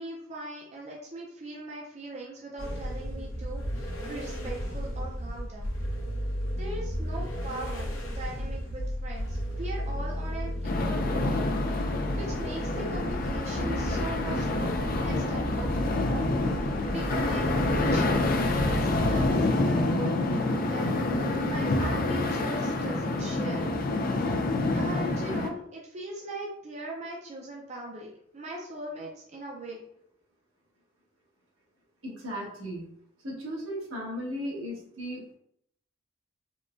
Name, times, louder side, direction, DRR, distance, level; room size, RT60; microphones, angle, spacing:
voice 1, 0.0-5.8 6.6-7.9 8.1-16.3 16.9-23.6 24.7-28.1 28.3-29.8, right 1 dB, 35° right, -3 dB, 0.5 m, -40 dB
sound 1, 2.6-19.3, equal, 80° left, 0.7 m, -33 dB
sound 2, 10.6-25.5, left 2 dB, 45° left, 0.3 m, -27 dB
voice 2, 32.0-32.8 33.2-35.4, equal, 85° right, -5 dB, 1.3 m, -36 dB
3.6 x 2.1 x 2.5 m, 0.70 s
head